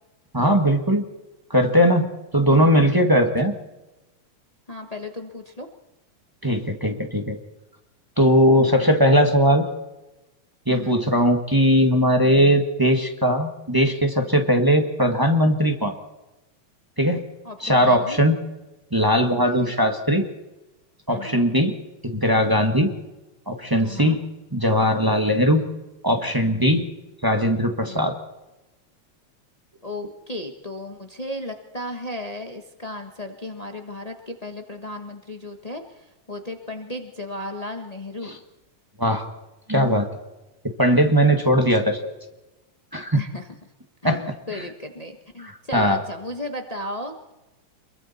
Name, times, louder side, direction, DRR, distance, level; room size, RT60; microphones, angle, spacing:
voice 1, 0.3-1.0 1.5-3.5 6.4-7.4 8.2-9.6 10.7-16.0 17.0-17.2 17.6-18.4 18.9-20.2 21.1-21.7 22.0-22.9 23.5-24.2 24.5-25.6 26.0-26.8 27.2-28.1 38.2-38.3 39.0-39.2 39.7-40.1 40.6-42.1 42.9-43.2 44.0-44.2 44.5-44.6 45.4-46.0, equal, 10° right, 4 dB, 1.0 m, -19 dB
voice 2, 4.7-5.7 10.7-11.0 17.4-18.2 19.4-19.8 21.1-21.5 23.8-24.2 27.9-28.1 29.8-38.4 43.1-43.5 44.0-47.3, left 1 dB, 70° left, 4 dB, 0.3 m, -35 dB
27.5 x 22.5 x 4.3 m, 1.0 s
omnidirectional pair, 3.3 m